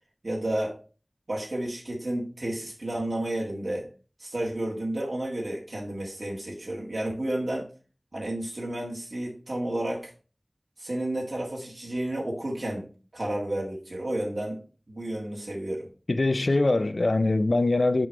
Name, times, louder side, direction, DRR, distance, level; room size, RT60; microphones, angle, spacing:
voice 1, 0.2-0.8 1.3-3.9 4.2-7.7 8.1-10.1 10.8-14.6 14.9-15.9, right 1 dB, 85° right, 1.7 m, -31 dB
voice 2, 16.1-18.1, left 2 dB, 85° left, 0.4 m, -23 dB
5.9 x 4.9 x 4.7 m
wide cardioid pair, 40°, 0 cm